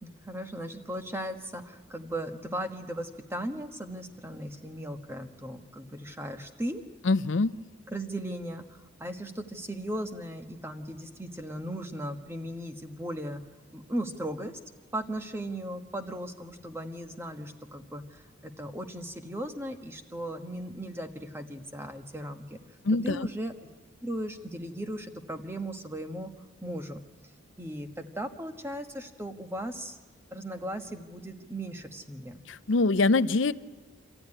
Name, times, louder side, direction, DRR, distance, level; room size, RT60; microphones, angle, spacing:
voice 1, 0.0-6.8 7.9-13.4 13.7-14.6 14.9-22.6 23.0-23.5 24.0-26.3 26.6-27.0 27.6-30.0 30.3-32.4, right 1 dB, 10° right, 6 dB, 1.2 m, -37 dB
voice 2, 7.0-7.5 22.8-23.3 32.5-33.5, left 3 dB, 65° left, 13 dB, 0.6 m, -24 dB
26.0 x 14.0 x 9.8 m, 1.4 s
head